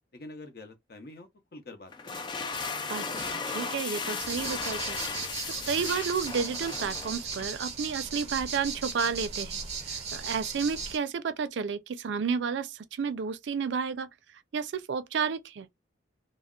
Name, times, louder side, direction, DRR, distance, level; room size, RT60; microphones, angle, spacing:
voice 1, 0.1-2.2, left 2 dB, 55° left, 0.7 m, -46 dB
sound 1, 1.9-7.5, left 4 dB, 25° left, 0.3 m, -35 dB
voice 2, 2.9-5.0 5.7-9.6 9.9-14.1 14.5-15.7, right 6 dB, 75° right, 0.4 m, -31 dB
sound 2, 4.2-11.0, right 5 dB, 35° right, 0.7 m, -37 dB
2.3 x 2.0 x 3.6 m
head